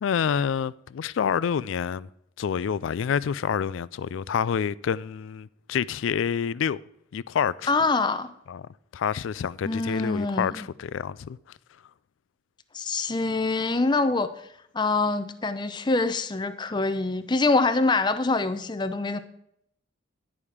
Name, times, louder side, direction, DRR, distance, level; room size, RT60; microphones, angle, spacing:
voice 1, 0.0-2.1 2.4-6.8 7.1-7.7 8.5-8.7 8.9-11.4, left 7 dB, 75° left, 0.3 m, -28 dB
voice 2, 7.7-8.3 9.7-10.7 12.7-14.3 14.7-19.2, left 3 dB, 25° left, 0.5 m, -25 dB
11.0 x 4.9 x 7.1 m
head